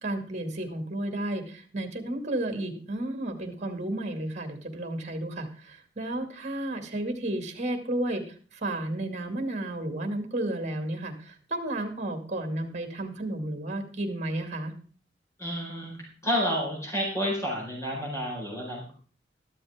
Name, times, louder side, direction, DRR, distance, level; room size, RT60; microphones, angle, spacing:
voice 1, 0.0-14.7, right 1 dB, 40° right, 6 dB, 2.3 m, -32 dB
voice 2, 15.4-15.9 16.2-18.9, equal, 15° left, -3 dB, 4.7 m, -30 dB
13.5 x 12.5 x 3.6 m, 0.41 s
head